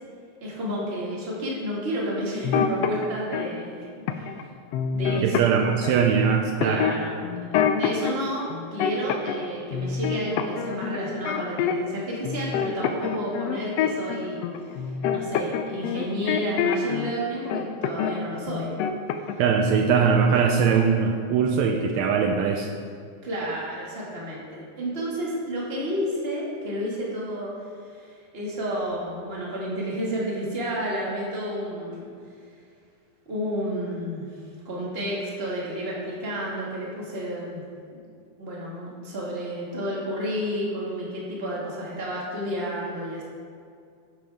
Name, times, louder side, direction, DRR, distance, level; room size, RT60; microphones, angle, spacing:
voice 1, 0.4-4.3 4.9-5.5 6.6-14.4 14.7-18.7 19.7-19.8 23.2-27.5 27.9-32.1 33.3-34.4 34.7-37.6 38.4-43.2, equal, 25° right, -5 dB, 1.8 m, -31 dB
sound 1, 2.4-3.5 4.1-4.4 4.7-6.0 6.6-8.1 8.5-9.5 9.7-12.0 12.2-17.1 17.5-18.2 18.5-19.5 19.7-20.0, left 8 dB, 80° left, 1.5 m, -26 dB
voice 2, 5.2-6.8 19.4-22.7, right 6 dB, 80° right, 2 dB, 1.8 m, -21 dB
10.5 x 9.3 x 3.5 m, 2.3 s
omnidirectional pair, 3.3 m